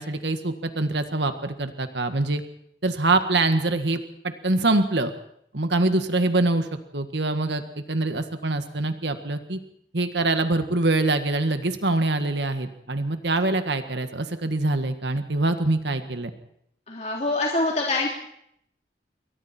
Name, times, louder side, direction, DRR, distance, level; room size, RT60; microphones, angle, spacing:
voice 1, 0.0-2.4 2.8-5.1 5.5-6.7 6.9-7.6 7.9-9.6 9.9-16.3, right 2 dB, 80° right, 8 dB, 1.7 m, -24 dB
voice 2, 16.9-18.1, left 2 dB, 40° left, -2 dB, 3.6 m, -25 dB
28.5 x 23.0 x 4.4 m, 0.70 s
head